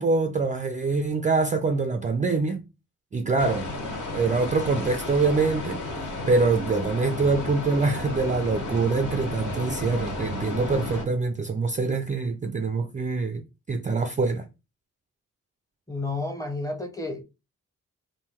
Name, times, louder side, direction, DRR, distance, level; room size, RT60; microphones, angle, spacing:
voice 1, 0.0-2.6 3.1-3.7 4.1-5.8 6.3-13.4 13.7-14.4, right 4 dB, 25° right, 0.4 m, -24 dB
sound 1, 3.4-11.0, left 2 dB, 70° left, 1.7 m, -33 dB
voice 2, 15.9-17.2, left 2 dB, 10° left, 0.7 m, -31 dB
3.7 x 2.6 x 4.3 m
wide cardioid pair, 135°, 32 cm